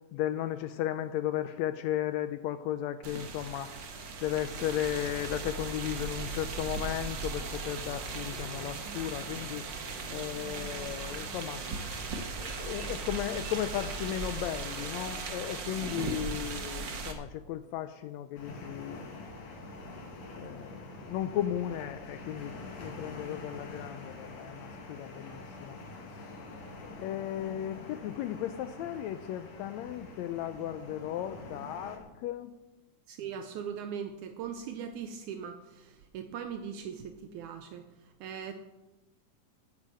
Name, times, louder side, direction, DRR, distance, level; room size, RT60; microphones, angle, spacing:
voice 1, 0.1-9.6 10.1-11.7 12.4-19.2 20.4-25.8 26.1-26.2 26.8-32.5, left 12 dB, 85° left, 11 dB, 1.5 m, -35 dB
sound 1, 3.0-17.1, right 4 dB, 55° right, 1.3 m, -38 dB
sound 2, 18.3-32.0, left 2 dB, 55° left, 3.0 m, -45 dB
voice 2, 33.1-37.9 38.2-38.5, right 7 dB, 80° right, 7 dB, 2.1 m, -40 dB
10.0 x 9.8 x 7.6 m, 1.1 s
omnidirectional pair, 3.7 m